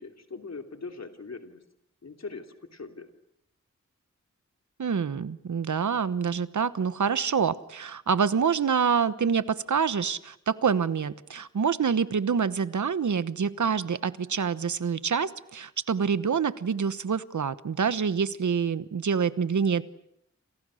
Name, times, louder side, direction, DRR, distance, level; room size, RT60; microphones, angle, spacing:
voice 1, 0.0-1.6 2.0-3.1, left 4 dB, 65° left, 5 dB, 3.1 m, -41 dB
voice 2, 4.8-19.8, right 6 dB, 80° right, 14 dB, 1.1 m, -26 dB
29.0 x 27.5 x 6.4 m, 0.77 s
wide cardioid pair, 70°, 29 cm